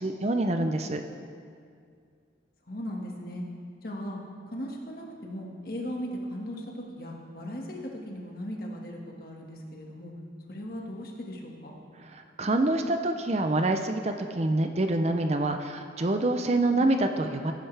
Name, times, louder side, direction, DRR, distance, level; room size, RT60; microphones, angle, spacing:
voice 1, 0.0-1.0 12.1-17.5, right 2 dB, 35° right, 6 dB, 0.5 m, -26 dB
voice 2, 2.7-3.4 3.8-4.2 4.5-10.1 10.5-11.7 16.7-16.9, equal, 50° left, -1 dB, 1.7 m, -38 dB
17.5 x 10.0 x 3.4 m, 2.3 s
head